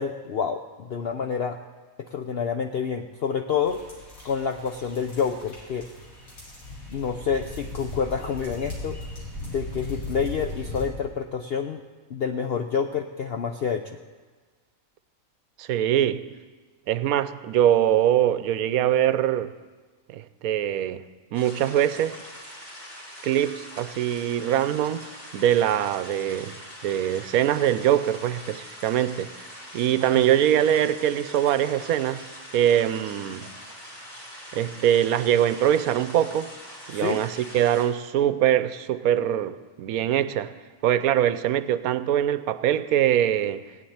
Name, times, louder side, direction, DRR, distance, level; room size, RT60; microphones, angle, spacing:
voice 1, 0.0-1.6 2.1-3.8 4.2-5.9 6.9-9.0 9.4-11.8 12.1-14.0 30.3-30.4 36.9-37.2, left 6 dB, 55° left, 0.7 m, -28 dB
sound 1, 3.6-10.9, left 1 dB, 75° left, 3.9 m, -38 dB
voice 2, 15.6-16.3 16.9-19.5 20.1-21.0 21.3-22.2 23.2-26.6 26.8-29.3 29.7-32.2 32.5-33.5 34.5-36.5 36.9-40.5 40.8-43.6, right 11 dB, 80° right, 1.1 m, -23 dB
sound 2, 21.3-37.8, equal, 40° left, 3.6 m, -43 dB
17.0 x 7.4 x 9.4 m
omnidirectional pair, 1.5 m